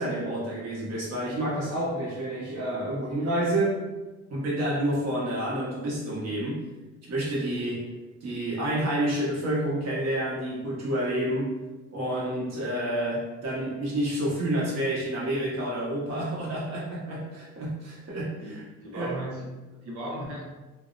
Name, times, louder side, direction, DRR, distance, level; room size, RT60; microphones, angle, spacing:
voice 1, 0.0-3.8 4.3-6.6 7.1-7.9 8.2-11.6 11.9-18.6 18.9-19.2, right 1 dB, 60° right, -5 dB, 1.0 m, -29 dB
voice 2, 18.8-20.4, right 1 dB, 85° right, -4 dB, 0.8 m, -37 dB
2.7 x 2.0 x 2.4 m, 1.2 s
cardioid pair, 90°, 30 cm